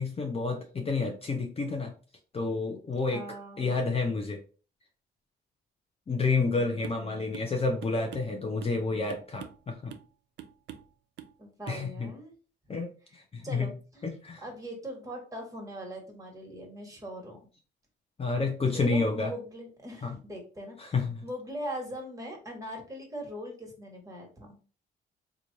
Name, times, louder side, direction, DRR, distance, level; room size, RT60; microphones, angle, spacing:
voice 1, 0.0-1.9 2.3-3.2 3.6-4.4 6.1-9.9 11.7-12.1 12.7-13.7 14.0-14.4 18.2-19.3 20.0-20.1 20.8-21.2, left 3 dB, 30° left, 3 dB, 0.6 m, -30 dB
voice 2, 3.1-3.7 6.6-7.2 11.4-12.3 13.1-13.2 13.4-14.1 14.4-17.4 18.7-24.6, equal, 15° right, 0 dB, 1.5 m, -41 dB
sound 1, 6.8-7.1 7.3-7.5 7.8-8.8 9.1-9.6 9.9-10.1 10.4-10.9 11.2-11.4 11.7-11.8, right 10 dB, 65° right, 0.5 m, -45 dB
3.1 x 2.4 x 3.9 m, 0.37 s
cardioid pair, 90°, 20 cm